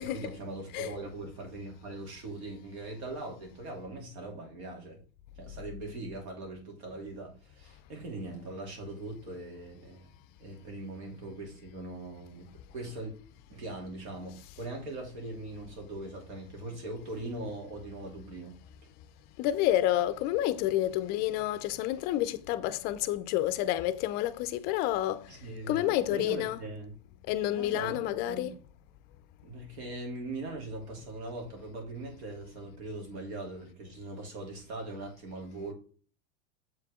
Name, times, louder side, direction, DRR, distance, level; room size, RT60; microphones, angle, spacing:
voice 1, 0.0-5.0 5.4-10.1 10.4-13.1 13.5-18.6 25.3-26.9 27.5-28.5 29.4-35.7, right 2 dB, 85° right, 3.0 m, -41 dB
voice 2, 19.4-25.3 25.7-26.6 27.3-28.5, left 13 dB, 30° left, 0.4 m, -29 dB
7.3 x 4.7 x 3.6 m
supercardioid pair, 160°, 33 cm